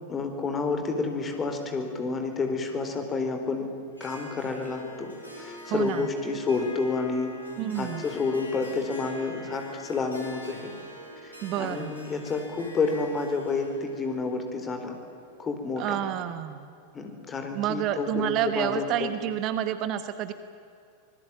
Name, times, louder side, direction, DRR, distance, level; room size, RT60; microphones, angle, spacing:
voice 1, 0.1-3.7 4.0-7.3 7.8-10.7 11.2-14.9 15.4-16.0 16.9-19.1, left 4 dB, 20° left, 6 dB, 4.2 m, -30 dB
Harp, 3.9-15.8, left 1 dB, 80° left, 5.9 m, -45 dB
voice 2, 5.6-6.1 7.6-8.0 11.4-11.9 15.8-16.7 17.5-20.3, right 11 dB, 40° right, 11 dB, 1.3 m, -29 dB
26.0 x 20.5 x 9.0 m, 2.5 s
figure-of-eight pair, 90°, 0 cm